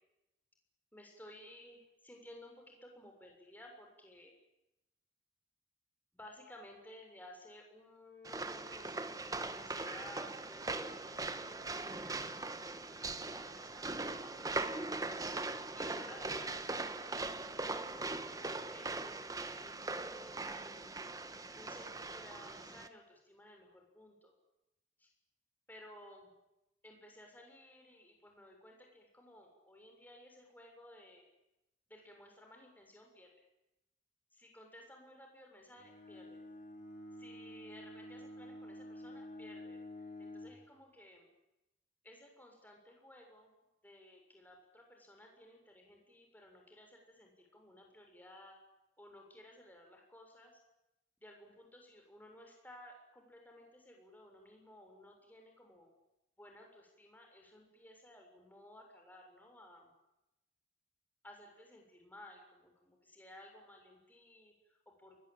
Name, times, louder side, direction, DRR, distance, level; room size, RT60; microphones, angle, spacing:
voice 1, 0.9-4.3 6.1-14.9 15.7-20.9 21.5-24.3 25.0-25.1 25.7-26.3 26.8-31.2 31.9-33.3 34.3-36.4 37.2-41.3 42.0-43.5 43.8-48.6 49.0-50.6 51.2-55.9 56.4-59.9 61.2-65.3, left 1 dB, 10° left, 2 dB, 6.8 m, -57 dB
sound 1, 8.2-22.9, right 3 dB, 20° right, 1.3 m, -40 dB
Bowed string instrument, 35.8-40.7, left 1 dB, 40° left, 5.8 m, -49 dB
29.5 x 21.5 x 9.1 m, 0.95 s
head